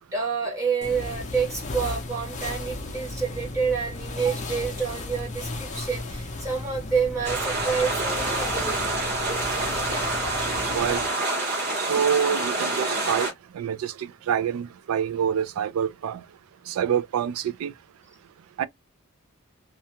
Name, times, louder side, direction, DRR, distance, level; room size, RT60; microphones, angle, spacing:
voice 1, 0.1-8.8, right 5 dB, 15° right, 0.8 m, -28 dB
sound 1, 0.8-11.1, left 2 dB, 35° left, 0.5 m, -35 dB
sound 2, 7.2-13.3, right 2 dB, 50° right, 1.0 m, -27 dB
voice 2, 11.8-16.2 16.7-17.7 18.6-18.7, right 8 dB, 75° right, 0.3 m, -26 dB
2.3 x 2.2 x 2.8 m
head